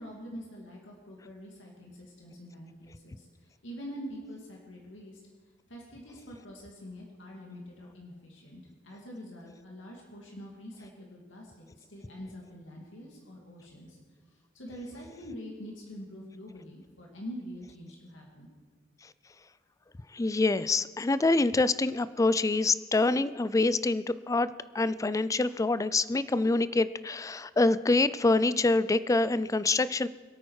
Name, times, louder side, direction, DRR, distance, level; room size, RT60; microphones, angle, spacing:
voice 1, 0.0-5.2 5.7-14.0 14.3-18.5, equal, 75° left, -1 dB, 2.2 m, -45 dB
voice 2, 20.1-24.5 24.7-30.1, left 3 dB, 15° left, 16 dB, 0.3 m, -26 dB
23.5 x 8.8 x 4.7 m, 1.4 s
head